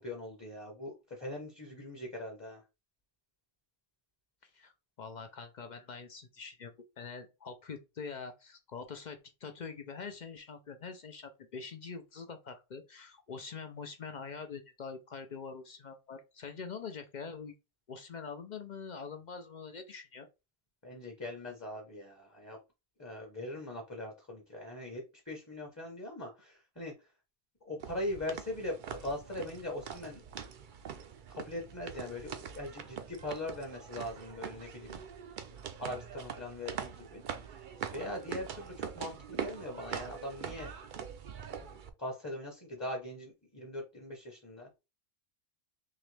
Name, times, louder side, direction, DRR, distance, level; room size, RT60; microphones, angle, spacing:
voice 1, 0.0-2.6 20.8-22.6 23.0-26.9 27.6-30.2 31.3-35.0 35.8-37.2 37.9-40.8 41.6-44.7, left 1 dB, 15° left, 0.8 m, -41 dB
voice 2, 4.4-4.7 5.0-17.5 17.9-20.3, left 5 dB, 50° left, 0.6 m, -44 dB
sound 1, 27.8-41.9, right 7 dB, 55° right, 0.6 m, -43 dB
3.8 x 3.0 x 3.2 m
omnidirectional pair, 1.1 m